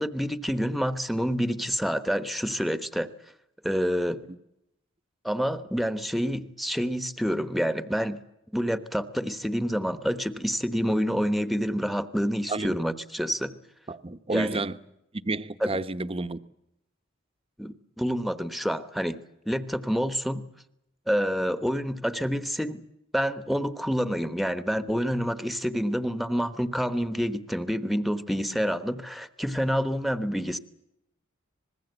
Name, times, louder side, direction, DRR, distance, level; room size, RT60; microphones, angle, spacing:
voice 1, 0.0-3.1 3.6-4.2 5.2-8.2 8.5-13.6 14.3-14.6 15.6-15.7 17.6-19.2 19.5-20.5 21.1-22.8 23.1-30.6, equal, ahead, 1.1 m, -28 dB
voice 2, 13.9-14.7 15.2-16.4, right 2 dB, 25° right, 0.9 m, -30 dB
25.5 x 21.0 x 8.1 m
head